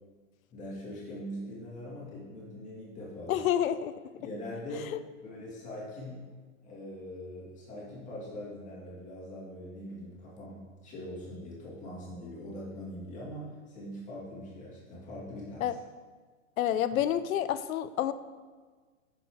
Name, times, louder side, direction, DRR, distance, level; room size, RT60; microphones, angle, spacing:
voice 1, 0.5-3.4 4.2-4.9 5.2-6.2 6.6-15.8, left 1 dB, 15° left, -6 dB, 2.2 m, -42 dB
voice 2, 3.3-3.9 4.9-5.0 15.6-15.7 16.6-18.1, left 11 dB, 70° left, 13 dB, 0.6 m, -28 dB
8.3 x 6.6 x 3.6 m, 1.4 s
hypercardioid pair, 150°, 42 cm